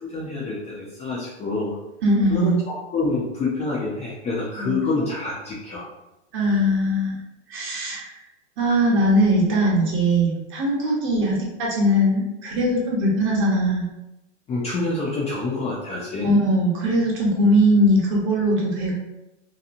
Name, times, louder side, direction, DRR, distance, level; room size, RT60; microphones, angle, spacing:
voice 1, 0.0-1.8 2.3-5.8 14.5-16.3, left 3 dB, 20° left, -6 dB, 0.5 m, -27 dB
voice 2, 2.0-2.6 4.6-5.1 6.3-7.2 7.5-8.1 8.6-13.8 16.2-18.9, equal, 30° right, -3 dB, 1.0 m, -20 dB
2.9 x 2.3 x 2.5 m, 0.94 s
hypercardioid pair, 110°, 37 cm